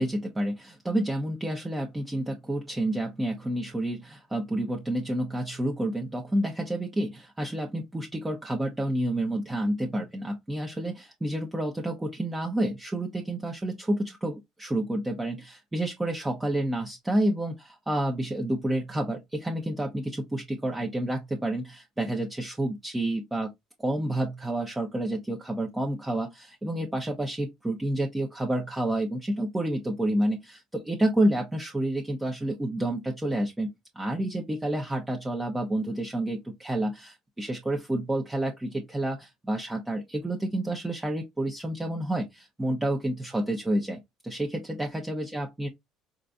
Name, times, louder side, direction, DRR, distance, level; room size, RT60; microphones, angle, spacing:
voice 1, 0.0-23.5 23.8-33.7 33.9-45.7, right 1 dB, 10° right, 0.7 m, -29 dB
3.8 x 2.6 x 2.3 m
supercardioid pair, 90°, 0 cm